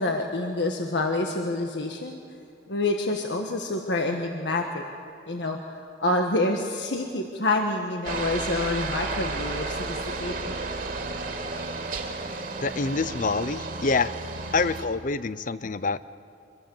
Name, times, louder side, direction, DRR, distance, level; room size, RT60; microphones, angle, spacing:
voice 1, 0.0-2.2 2.7-4.8 5.3-10.6, left 2 dB, 80° left, 2 dB, 1.6 m, -27 dB
Aircraft, 8.0-14.8, right 3 dB, 50° right, 2.6 m, -32 dB
voice 2, 12.6-14.1 14.5-16.0, left 4 dB, 45° left, 15 dB, 0.6 m, -26 dB
25.5 x 22.0 x 7.2 m, 2.4 s
head